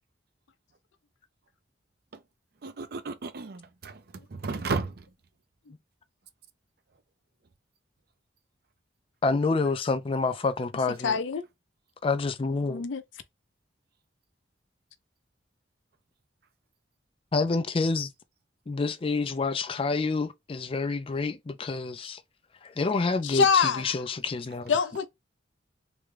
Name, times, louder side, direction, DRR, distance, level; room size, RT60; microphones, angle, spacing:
voice 1, 2.6-5.1, right 4 dB, 60° right, 0.6 m, -34 dB
voice 2, 9.2-11.2 12.0-12.8 17.3-18.1 18.7-22.2 22.6-24.7, left 3 dB, 30° left, 0.4 m, -28 dB
voice 3, 11.0-11.4 12.7-13.0 23.2-23.9 24.7-25.1, left 6 dB, 90° left, 0.5 m, -24 dB
3.4 x 2.2 x 3.2 m
head